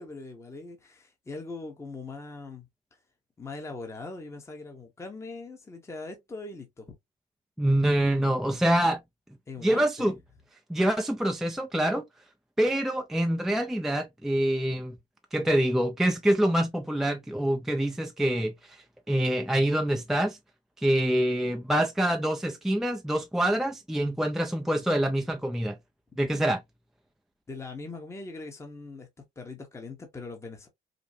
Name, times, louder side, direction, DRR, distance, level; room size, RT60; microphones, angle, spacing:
voice 1, 0.0-2.7 3.4-7.0 9.5-10.1 27.5-29.1 29.4-30.7, left 3 dB, 15° left, 0.9 m, -41 dB
voice 2, 7.6-9.0 9.6-10.1 10.7-12.0 12.6-15.0 15.3-20.4 20.8-25.8 26.2-26.6, right 1 dB, ahead, 0.4 m, -26 dB
5.1 x 2.0 x 2.6 m
cardioid pair, 110°, 17 cm